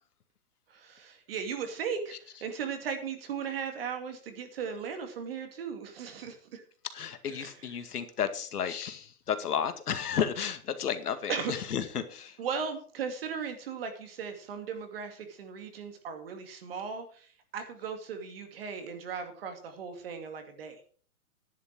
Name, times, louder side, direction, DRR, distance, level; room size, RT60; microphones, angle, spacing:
voice 1, 0.7-6.6 7.3-7.5 11.3-11.5 12.4-20.8, right 6 dB, 40° right, 6 dB, 2.5 m, -37 dB
voice 2, 6.9-12.4, left 8 dB, 85° left, 9 dB, 2.2 m, -32 dB
11.0 x 10.5 x 4.7 m, 0.43 s
hypercardioid pair, 175°, 45 cm